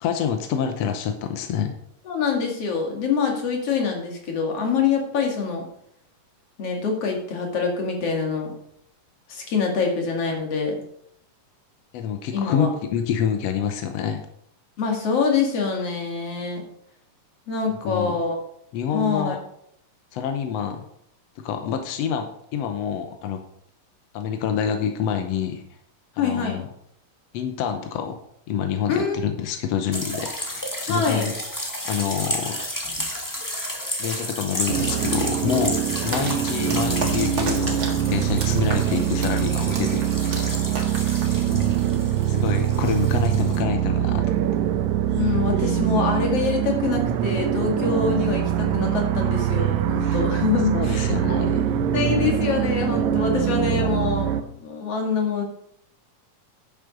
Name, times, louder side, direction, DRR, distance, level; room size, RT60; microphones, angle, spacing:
voice 1, 0.0-1.7 11.9-14.2 17.8-18.2 18.7-19.4 20.1-20.9 21.4-23.4 24.1-25.6 26.2-26.6 27.3-28.2 28.5-31.3 31.8-32.6 34.0-37.8 38.1-40.4 42.3-44.3 50.0-50.2 50.7-51.6 53.7-53.9, left 8 dB, 75° left, 6 dB, 1.5 m, -27 dB
voice 2, 2.1-5.6 6.6-8.5 9.3-10.7 12.3-12.7 14.8-16.6 17.5-18.4 18.9-19.4 26.2-26.7 28.9-29.3 30.9-31.3 38.9-39.0 45.1-51.4 51.9-55.4, left 5 dB, 50° left, 1 dB, 3.0 m, -25 dB
sound 1, 29.9-43.6, left 1 dB, 20° left, 0.5 m, -32 dB
sound 2, 34.7-54.4, right 10 dB, 80° right, 1.8 m, -23 dB
sound 3, 36.1-41.9, right 3 dB, 45° right, 2.0 m, -34 dB
10.5 x 7.3 x 5.2 m, 0.72 s
omnidirectional pair, 3.8 m